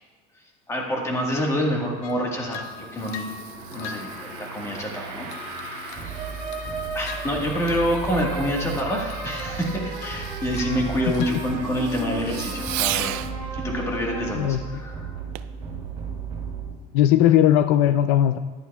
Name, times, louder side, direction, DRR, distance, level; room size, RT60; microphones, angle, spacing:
voice 1, 0.7-3.3 3.7-6.1 6.9-13.2 13.5-15.1, equal, 15° left, -1 dB, 1.5 m, -27 dB
sound 1, 2.0-4.8 5.3-8.0 8.2-8.5 8.8-12.1 12.4-12.8, left 7 dB, 85° left, 0.8 m, -42 dB
sound 2, 2.1-16.7, right 4 dB, 30° right, 2.6 m, -34 dB
Fireworks, 2.4-13.4 15.4-15.6 16.2-16.3, right 16 dB, 60° right, 0.4 m, -37 dB
voice 2, 16.9-18.4, left 11 dB, 70° left, 11 dB, 0.4 m, -18 dB
16.5 x 10.5 x 2.3 m, 1.4 s
cardioid pair, 170°, 18 cm